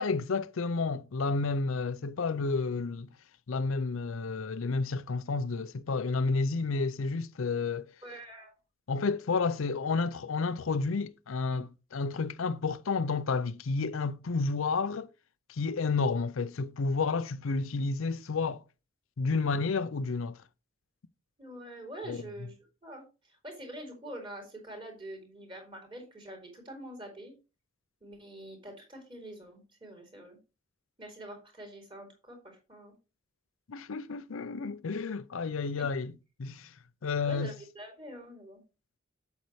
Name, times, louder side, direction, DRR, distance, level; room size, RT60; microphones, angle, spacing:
voice 1, 0.0-3.1 3.5-7.9 8.9-15.1 15.5-18.6 19.2-20.4 22.1-22.2 33.7-36.1 36.4-36.7 37.0-37.5, left 4 dB, 75° left, 0.5 m, -31 dB
voice 2, 8.0-8.5 11.5-11.6 21.4-22.5 22.8-27.3 28.0-30.4 31.0-32.9 35.8-35.9 37.2-38.6, right 1 dB, 25° right, 3.5 m, -45 dB
8.3 x 8.1 x 3.2 m
head